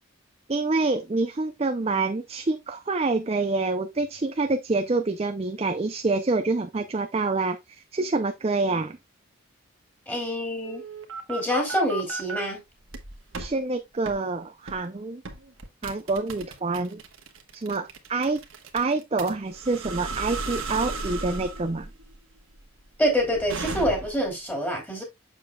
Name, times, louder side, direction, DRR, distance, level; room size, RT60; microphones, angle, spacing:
voice 1, 0.5-9.0 13.4-15.2 15.8-17.0 17.5-18.4 18.7-21.9, right 3 dB, 30° right, 0.4 m, -27 dB
voice 2, 10.1-10.8 11.3-12.6 23.0-25.0, equal, 10° left, 2.7 m, -26 dB
sound 1, 10.6-12.4 12.9-13.5 14.1-14.2 14.7-14.9 15.3-24.3, right 3 dB, 75° right, 1.3 m, -35 dB
7.0 x 6.9 x 2.3 m
head